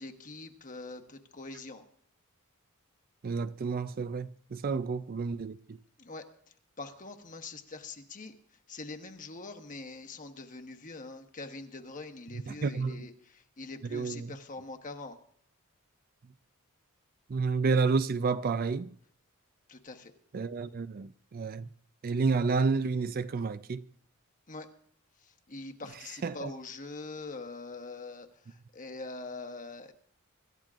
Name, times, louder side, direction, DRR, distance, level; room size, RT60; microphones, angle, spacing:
voice 1, 0.0-1.8 4.7-4.8 6.0-6.2 6.8-8.3 8.7-15.2 19.7-20.1 24.5-24.7 25.2-29.9, left 3 dB, 35° left, 1.1 m, -43 dB
voice 2, 3.2-5.8 12.5-13.1 13.9-14.3 17.3-18.9 20.3-21.7 22.0-23.9 26.2-26.5, right 4 dB, 45° right, 0.4 m, -30 dB
26.0 x 13.5 x 2.5 m
head